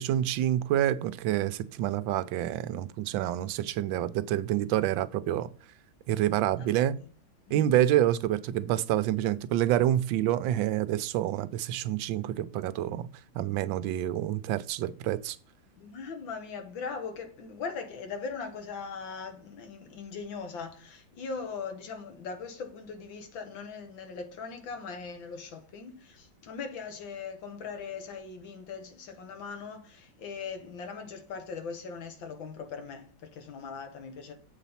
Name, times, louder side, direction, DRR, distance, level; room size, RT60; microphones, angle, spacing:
voice 1, 0.0-5.5 6.1-7.0 7.5-13.1 13.3-15.4, right 12 dB, 80° right, 1.3 m, -27 dB
voice 2, 6.6-7.1 7.5-7.8 15.8-34.3, left 5 dB, 80° left, 2.1 m, -40 dB
7.5 x 4.1 x 5.5 m
omnidirectional pair, 2.1 m